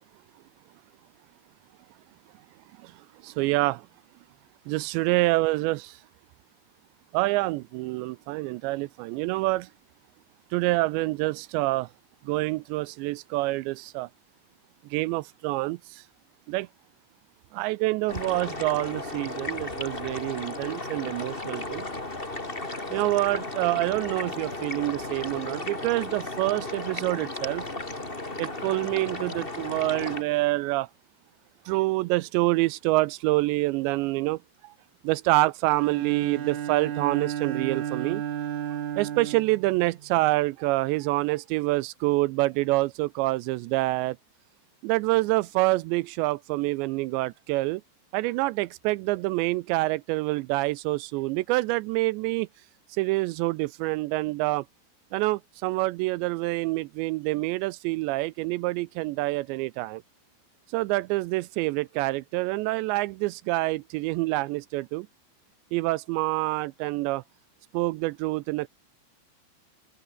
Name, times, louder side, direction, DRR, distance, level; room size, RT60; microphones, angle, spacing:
voice 1, 3.2-3.8 4.7-6.0 7.1-9.7 10.5-11.9 12.2-14.1 14.9-16.0 16.5-16.7 17.5-21.9 22.9-27.6 28.4-30.9 31.7-34.7 35.0-38.2 39.0-44.2 44.8-47.8 48.1-52.5 52.9-54.6 55.1-60.0 60.7-65.1 65.7-67.2 67.7-68.7, right 20 dB, 85° right, 2.7 m, -27 dB
sound 1, 18.1-30.2, left 2 dB, 15° left, 2.8 m, -35 dB
Bowed string instrument, 35.7-40.3, right 10 dB, 55° right, 2.3 m, -33 dB
open air
omnidirectional pair, 5.4 m